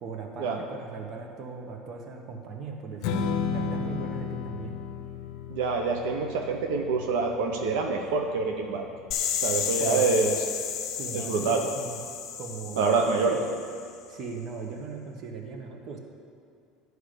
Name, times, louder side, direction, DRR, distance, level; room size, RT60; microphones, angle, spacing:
voice 1, 0.0-4.7 9.8-10.1 10.9-12.0 12.4-12.9 13.3-13.5 14.1-16.0, right 4 dB, 45° right, 2 dB, 1.2 m, -38 dB
Strum, 3.0-9.3, left 5 dB, 70° left, 0.6 m, -34 dB
voice 2, 5.5-8.9 9.4-10.4 11.1-11.6 12.8-13.4, right 4 dB, 85° right, 3 dB, 0.8 m, -26 dB
sound 1, 9.1-13.9, left 8 dB, 50° left, 0.9 m, -32 dB
10.0 x 4.8 x 6.6 m, 2.4 s
supercardioid pair, 130°, 0 cm